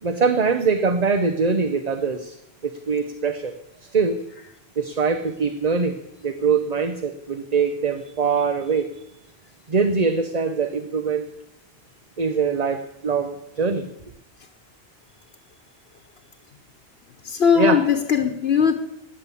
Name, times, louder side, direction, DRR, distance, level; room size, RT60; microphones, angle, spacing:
voice 1, 0.0-3.5 3.8-4.2 4.8-8.9 9.7-11.3 12.2-13.8 17.5-17.8, right 5 dB, 40° right, 8 dB, 1.0 m, -23 dB
voice 2, 17.2-18.7, left 7 dB, 75° left, 4 dB, 1.4 m, -19 dB
16.5 x 10.0 x 8.4 m, 0.83 s
omnidirectional pair, 1.1 m